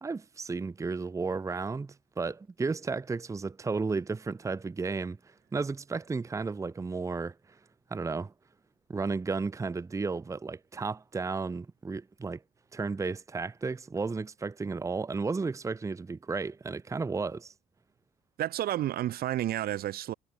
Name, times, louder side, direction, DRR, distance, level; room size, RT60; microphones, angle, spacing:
voice 1, 0.0-7.3 7.9-8.3 8.9-12.4 12.7-17.5, right 4 dB, 20° right, 0.9 m, -33 dB
voice 2, 18.4-20.1, right 13 dB, 65° right, 1.4 m, -31 dB
cardioid pair, 110°, 17 cm